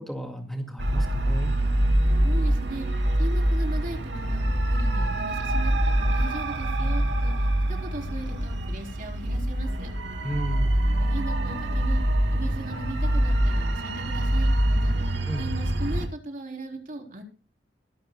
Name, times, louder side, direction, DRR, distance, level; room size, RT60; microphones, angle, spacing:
voice 1, 0.0-1.5 10.2-10.7 15.3-15.4, equal, ahead, 3 dB, 2.2 m, -33 dB
sound 1, 0.8-16.1, right 1 dB, 80° right, 2.5 m, -24 dB
voice 2, 2.2-2.9 3.2-4.4 4.7-7.3 7.8-9.9 11.0-12.0 12.3-14.9 15.4-17.2, right 1 dB, 50° right, 2 dB, 3.9 m, -38 dB
23.0 x 12.0 x 2.3 m, 0.31 s
head